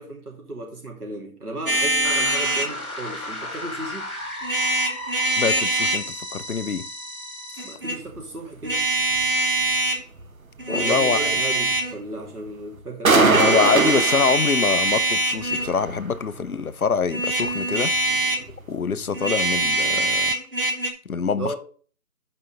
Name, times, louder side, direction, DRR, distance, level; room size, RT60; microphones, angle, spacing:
voice 1, 0.0-4.1 7.6-8.8 10.7-13.4 21.1-21.6, right 1 dB, 85° right, 3.0 m, -35 dB
sound 1, 1.7-2.7 4.4-6.1 7.6-8.0 8.6-10.0 10.6-12.0 13.3-15.7 17.1-18.5 19.1-20.9, right 2 dB, 35° right, 1.0 m, -23 dB
sound 2, 2.0-7.7, left 1 dB, 20° left, 2.1 m, -34 dB
voice 2, 5.4-6.9 10.7-11.2 13.1-17.9 18.7-20.4 21.1-21.5, left 5 dB, 75° left, 0.8 m, -25 dB
sound 3, 8.1-8.2 8.6-8.8 9.1-9.2 9.6-9.7 10.2-10.3 10.6-10.8 11.2-11.8 12.2-12.5 12.8-12.9 13.0-15.0 15.3-16.6 16.9-17.0 17.4-17.6 17.9-18.6 18.9-19.2 19.5-19.6 20.0-20.1, right 4 dB, 65° right, 1.0 m, -24 dB
9.0 x 5.4 x 3.3 m
figure-of-eight pair, 175°, 44 cm